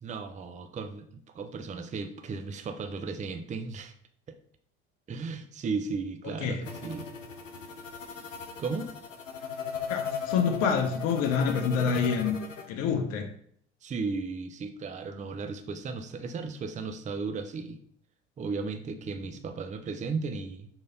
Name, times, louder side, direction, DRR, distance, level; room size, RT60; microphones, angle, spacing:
voice 1, 0.0-3.9 4.3-4.4 5.1-7.1 8.6-8.9 13.8-17.8 18.4-20.7, right 4 dB, 20° right, 8 dB, 0.7 m, -35 dB
sound 1, 6.6-12.6, left 6 dB, 80° left, 1.0 m, -37 dB
voice 2, 9.9-12.4 12.7-13.3, left 6 dB, 40° left, 3 dB, 0.9 m, -27 dB
6.6 x 4.0 x 3.9 m, 0.63 s
figure-of-eight pair, 70°, 38 cm